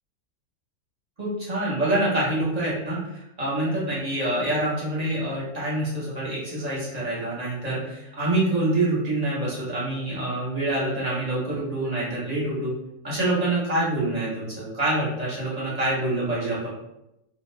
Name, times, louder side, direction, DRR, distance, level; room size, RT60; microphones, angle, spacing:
voice 1, 1.2-12.7 13.0-16.7, right 1 dB, 35° right, -7 dB, 0.8 m, -26 dB
2.5 x 2.3 x 3.2 m, 0.86 s
omnidirectional pair, 1.5 m